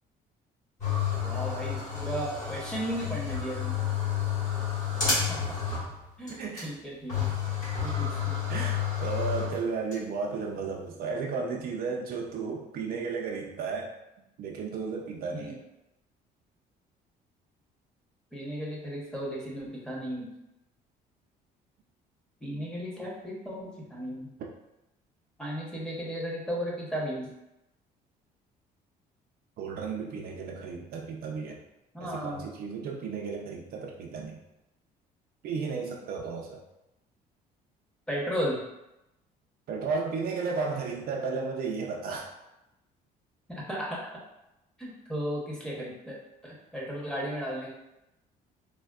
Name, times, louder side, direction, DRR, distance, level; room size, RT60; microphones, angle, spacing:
sound 1, 0.8-6.0 6.3-6.4 6.6-6.7 7.1-9.9, left 7 dB, 45° left, 1.5 m, -30 dB
voice 1, 1.2-3.8 5.1-5.4 6.2-7.3 7.8-8.4 15.3-15.6 18.3-20.3 22.4-24.3 25.4-27.3 31.9-32.4 38.1-38.6 43.5-44.0 44.8-46.2 46.4-47.7, equal, 5° left, -5 dB, 0.9 m, -35 dB
voice 2, 6.4-6.7 8.5-13.9 14.4-15.6 29.6-31.6 32.0-34.4 35.4-36.6 39.7-42.3, right 5 dB, 60° right, 0 dB, 0.5 m, -34 dB
3.5 x 2.1 x 2.3 m, 0.90 s
cardioid pair, 110°, 17 cm